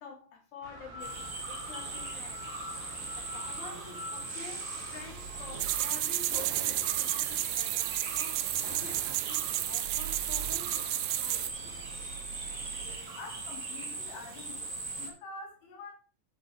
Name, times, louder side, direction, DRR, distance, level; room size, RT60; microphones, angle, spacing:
voice 1, 0.0-2.4 2.8-10.9 11.1-11.7, left 5 dB, 60° left, 4.3 m, -48 dB
sound 1, 0.6-13.0, right 3 dB, 60° right, 3.0 m, -46 dB
sound 2, 1.0-15.1, right 3 dB, 30° right, 1.8 m, -40 dB
sound 3, 5.6-11.5, right 16 dB, 85° right, 1.7 m, -31 dB
voice 2, 13.2-14.7 15.0-15.9, left 3 dB, 85° left, 3.8 m, -46 dB
10.5 x 5.0 x 5.4 m
omnidirectional pair, 3.9 m